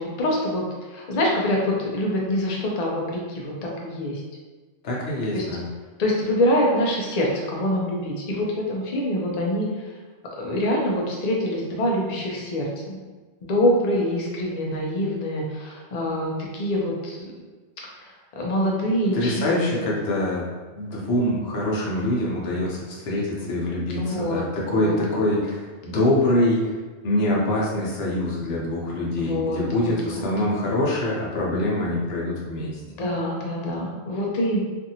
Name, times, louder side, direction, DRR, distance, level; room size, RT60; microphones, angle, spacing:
voice 1, 0.0-4.2 5.3-5.4 6.0-9.9 10.4-13.0 13.4-17.3 17.9-19.9 23.9-24.9 25.2-25.3 29.2-30.2 33.0-34.6, left 1 dB, 45° left, -2 dB, 0.6 m, -25 dB
voice 2, 4.8-5.7 19.1-26.7 27.0-32.8, left 1 dB, 65° left, -4 dB, 0.9 m, -24 dB
2.6 x 2.5 x 2.8 m, 1.4 s
omnidirectional pair, 1.2 m